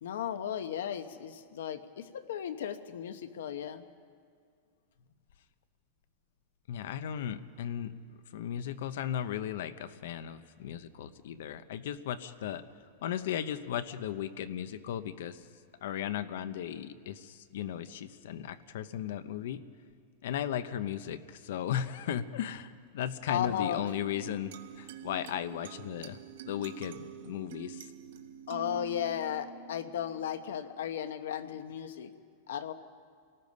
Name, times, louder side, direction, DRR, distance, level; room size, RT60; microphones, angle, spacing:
voice 1, 0.0-3.8 23.3-23.8 28.5-32.1 32.5-32.7, left 9 dB, 90° left, 9 dB, 1.0 m, -35 dB
voice 2, 6.7-7.9 8.3-12.6 13.0-15.4 15.8-19.6 20.2-26.2 26.4-27.9, left 10 dB, 65° left, 12 dB, 0.9 m, -36 dB
sound 1, 23.9-30.9, right 9 dB, 65° right, 1.4 m, -47 dB
28.0 x 19.0 x 5.4 m, 2.1 s
supercardioid pair, 170°, 0 cm